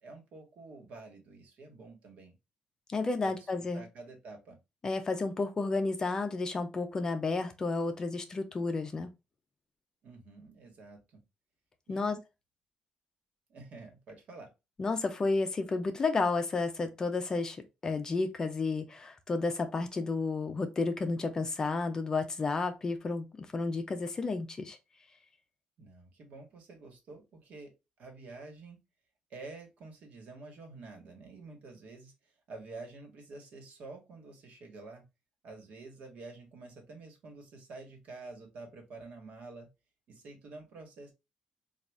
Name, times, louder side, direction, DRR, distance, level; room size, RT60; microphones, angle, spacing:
voice 1, 0.0-2.3 3.2-4.6 10.0-11.2 11.9-12.2 13.5-14.5 25.8-27.7 28.0-28.8 29.3-35.0 35.4-39.7 40.1-41.1, right 3 dB, 65° right, 1.3 m, -49 dB
voice 2, 2.9-3.8 4.8-9.1 11.9-12.2 14.8-24.8, left 3 dB, 25° left, 0.5 m, -32 dB
3.7 x 2.4 x 3.4 m
cardioid pair, 155°, 3 cm